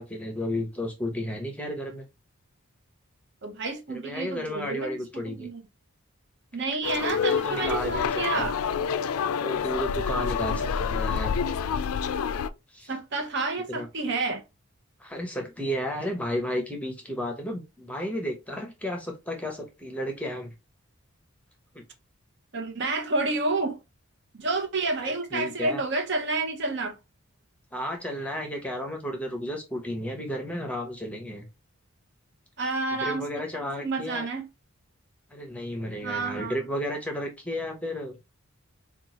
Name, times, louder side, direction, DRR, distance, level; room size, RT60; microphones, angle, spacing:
voice 1, 0.0-2.1 3.9-5.5 7.3-8.5 9.4-11.4 12.7-12.9 13.7-13.9 15.0-20.5 21.7-21.8 25.0-25.8 27.7-31.5 33.0-34.3 35.3-38.3, equal, 5° left, 0.8 m, -33 dB
voice 2, 3.4-5.6 6.5-8.6 12.9-14.4 22.5-23.8 24.3-27.0 32.6-34.5 36.0-36.6, right 3 dB, 55° right, 0.7 m, -30 dB
sound 1, 6.8-12.5, left 6 dB, 85° left, 0.3 m, -28 dB
4.4 x 2.4 x 2.9 m
head